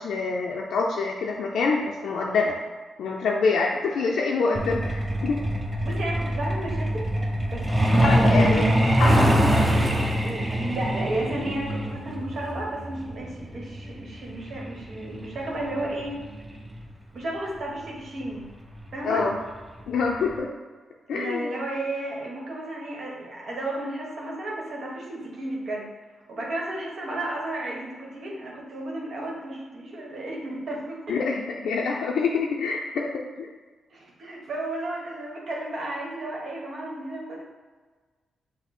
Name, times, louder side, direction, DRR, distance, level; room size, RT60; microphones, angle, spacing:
voice 1, 0.0-2.6 3.0-5.4 8.0-9.3 19.0-19.4 19.9-20.5 21.1-21.5 31.1-33.5, left 4 dB, 80° left, -1 dB, 0.4 m, -26 dB
Truck, 4.5-16.8 18.1-18.2 18.6-18.8 19.2-19.5 19.8-19.9 20.4-20.5, equal, 15° right, 0.7 m, -24 dB
voice 2, 5.8-7.0 7.5-8.7 10.2-16.1 17.1-18.5 18.9-19.2 21.1-25.9 26.3-31.2 33.9-37.4, right 1 dB, 65° right, -3 dB, 1.2 m, -33 dB
5.8 x 2.0 x 4.2 m, 1.4 s
cardioid pair, 80°, 0 cm